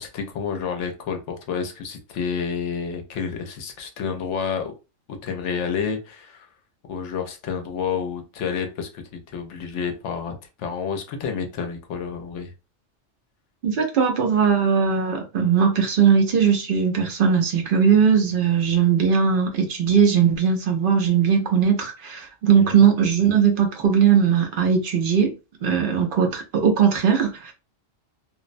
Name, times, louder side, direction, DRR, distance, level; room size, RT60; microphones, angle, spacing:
voice 1, 0.0-4.7 5.1-6.5 6.9-12.5 22.6-22.8, left 6 dB, 70° left, 0.8 m, -29 dB
voice 2, 13.6-25.3 25.6-27.5, right 7 dB, 60° right, 0.6 m, -19 dB
2.5 x 2.0 x 2.5 m
omnidirectional pair, 1.3 m